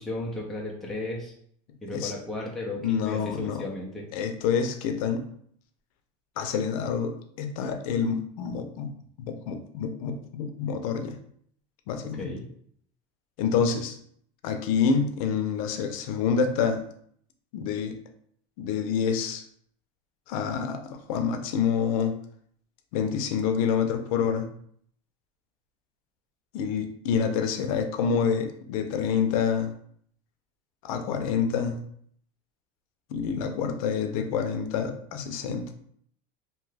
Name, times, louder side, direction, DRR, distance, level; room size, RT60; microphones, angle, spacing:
voice 1, 0.0-1.3 1.8-4.0 12.1-12.5, left 2 dB, ahead, -4 dB, 0.4 m, -34 dB
voice 2, 2.8-3.6 4.1-5.3 6.4-8.9 9.2-11.2 11.9-12.3 13.4-14.0 14.4-16.8 17.5-17.9 18.6-19.4 20.3-22.1 22.9-24.5 26.5-29.7 30.8-31.8 33.1-35.7, left 6 dB, 90° left, 6 dB, 0.5 m, -27 dB
2.7 x 2.2 x 3.2 m, 0.64 s
cardioid pair, 175°, 17 cm